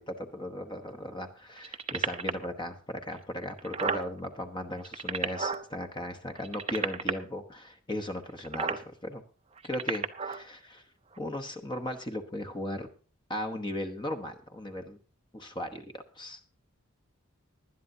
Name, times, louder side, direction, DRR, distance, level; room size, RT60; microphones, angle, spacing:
voice 1, 0.0-9.2 9.6-10.8 11.2-12.9 13.3-15.0 15.3-16.4, left 1 dB, 20° left, 6 dB, 1.1 m, -37 dB
sound 1, 1.6-2.4 3.1-3.2 3.4-4.0 4.7-5.6 6.4-7.1 8.4-8.8 9.6-10.4 11.2-11.3, right 5 dB, 30° right, 0.7 m, -31 dB
19.5 x 11.0 x 2.8 m, 0.37 s
head